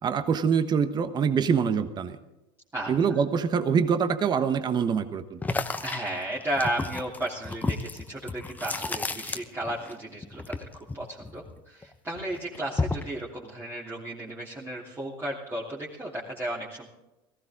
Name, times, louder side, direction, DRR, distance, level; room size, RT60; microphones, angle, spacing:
voice 1, 0.0-2.2 2.9-5.4, right 6 dB, 35° right, 10 dB, 1.2 m, -25 dB
sound 1, 5.4-9.9 10.2-11.8 12.2-13.2, left 3 dB, 15° left, 1.0 m, -32 dB
voice 2, 5.8-16.9, right 1 dB, 20° right, -6 dB, 3.1 m, -34 dB
18.0 x 15.5 x 3.7 m, 0.98 s
supercardioid pair, 100°, 13 cm